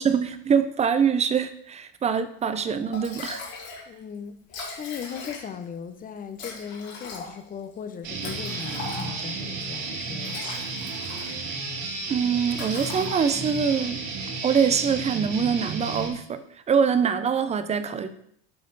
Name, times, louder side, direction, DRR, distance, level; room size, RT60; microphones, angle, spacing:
voice 1, 0.0-3.4 12.1-14.0 14.4-16.4 16.7-18.1, right 6 dB, 20° right, 11 dB, 0.5 m, -24 dB
Liquid, 2.6-2.7 2.9-3.9 4.1-4.2 4.4-5.7 6.4-9.4 10.0-11.6 11.9-12.1 12.5-13.6, left 4 dB, 65° left, 2.5 m, -39 dB
voice 2, 3.9-4.4 4.8-10.7, left 7 dB, 25° left, 10 dB, 0.7 m, -38 dB
Guitar, 8.0-16.1, right 3 dB, 55° right, 2.2 m, -32 dB
7.6 x 4.3 x 3.9 m, 0.69 s
supercardioid pair, 115°, 32 cm